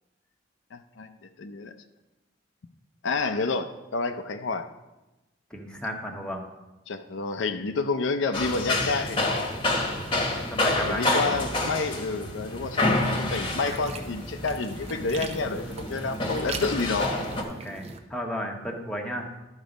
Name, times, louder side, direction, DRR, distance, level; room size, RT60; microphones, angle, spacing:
voice 1, 0.7-1.1 1.4-1.7 3.0-4.7 6.9-9.5 10.9-17.2, left 4 dB, 80° left, 8 dB, 0.5 m, -29 dB
voice 2, 5.5-6.4 10.5-11.4 17.5-19.3, equal, 5° left, 1 dB, 1.0 m, -34 dB
sound 1, 8.3-17.4, left 2 dB, 25° left, 1.1 m, -28 dB
sound 2, 12.7-18.0, right 3 dB, 35° right, 0.7 m, -40 dB
12.0 x 4.0 x 5.1 m, 1.0 s
head